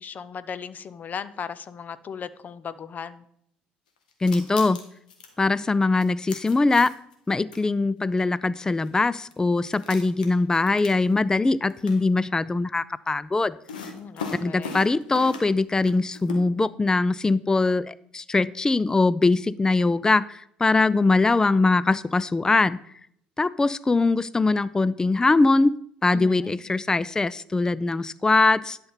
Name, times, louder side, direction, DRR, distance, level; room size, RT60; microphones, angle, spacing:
voice 1, 0.0-3.2 13.8-14.8 26.1-26.6, left 7 dB, 40° left, 15 dB, 0.8 m, -37 dB
Onion Sounds, 4.1-5.3 6.0-7.1 7.5-7.6 8.8-8.9 9.3-9.4 9.7-11.4 11.7-12.0 13.7-15.6 15.8-16.4, left 4 dB, 85° left, 1.4 m, -37 dB
voice 2, 4.2-4.8 5.4-6.9 7.3-13.6 14.4-22.8 23.4-25.8 26.0-28.8, left 3 dB, 15° left, 18 dB, 0.4 m, -22 dB
11.0 x 6.8 x 4.1 m, 0.68 s
hypercardioid pair, 60°, 4 cm